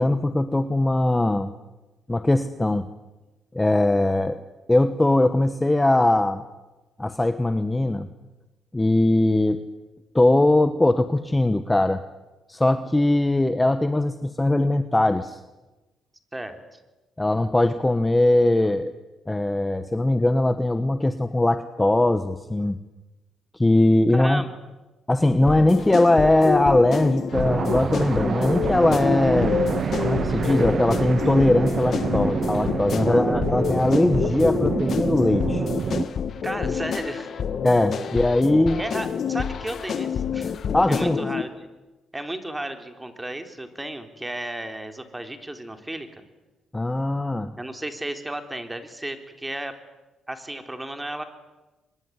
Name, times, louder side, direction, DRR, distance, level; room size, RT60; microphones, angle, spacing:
voice 1, 0.0-1.5 2.1-2.9 3.5-4.4 4.7-6.4 7.0-8.1 8.7-9.6 10.1-12.0 12.5-15.4 17.2-18.9 19.3-22.8 23.5-24.4 25.1-29.6 30.0-35.6 36.6-36.7 37.6-38.8 40.7-41.3 46.7-47.5, left 1 dB, 15° left, 10 dB, 1.2 m, -20 dB
voice 2, 16.3-16.8 24.1-24.5 33.0-33.4 36.4-37.3 38.8-40.6 40.9-41.7 42.1-46.2 47.6-49.7 50.3-51.2, right 1 dB, 10° right, 7 dB, 3.6 m, -34 dB
sound 1, 25.4-41.4, left 7 dB, 55° left, 1.9 m, -28 dB
sound 2, 27.3-36.1, right 6 dB, 45° right, 1.0 m, -27 dB
24.5 x 22.0 x 9.8 m, 1.1 s
cardioid pair, 90°, 0 cm